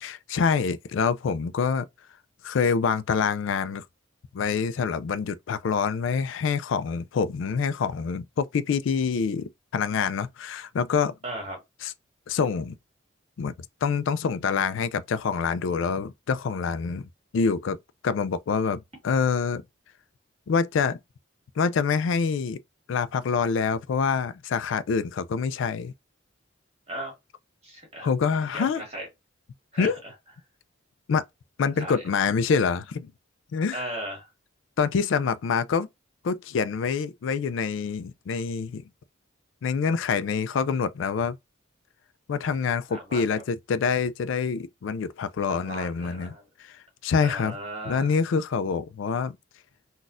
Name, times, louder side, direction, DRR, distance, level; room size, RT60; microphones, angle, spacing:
voice 1, 0.0-1.9 2.4-3.8 4.3-11.1 11.8-11.9 12.3-12.7 13.4-13.5 13.8-17.8 18.0-19.6 20.5-21.0 21.6-22.6 22.9-25.9 28.0-28.8 29.8-30.0 31.1-31.2 31.6-33.1 33.5-33.8 34.8-35.9 36.2-38.8 39.6-41.4 42.3-46.3 46.6-46.7 47.0-47.6 47.8-49.4, left 5 dB, 70° left, 0.3 m, -26 dB
voice 2, 11.2-11.6 26.9-27.1 27.6-28.1 28.5-29.1 29.7-29.9 31.8-32.0 33.7-34.3 42.9-43.4 45.6-46.4 47.2-48.1, right 1 dB, 30° right, 1.8 m, -36 dB
4.0 x 2.3 x 2.5 m
head